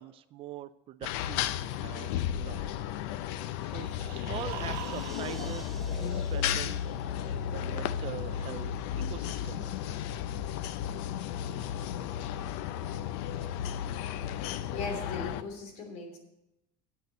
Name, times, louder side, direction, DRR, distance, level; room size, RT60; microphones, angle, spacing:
voice 1, 0.0-2.8 3.6-8.7 9.1-10.0, right 12 dB, 40° right, 14 dB, 0.4 m, -44 dB
sound 1, 1.0-15.4, left 10 dB, 80° left, 0.6 m, -34 dB
sound 2, 3.7-6.9, right 11 dB, 70° right, 1.1 m, -45 dB
sound 3, 3.8-8.2, right 1 dB, ahead, 1.0 m, -54 dB
voice 2, 14.7-16.2, left 3 dB, 60° left, 3 dB, 3.0 m, -38 dB
8.2 x 6.8 x 8.3 m, 0.89 s
cardioid pair, 135°, 14 cm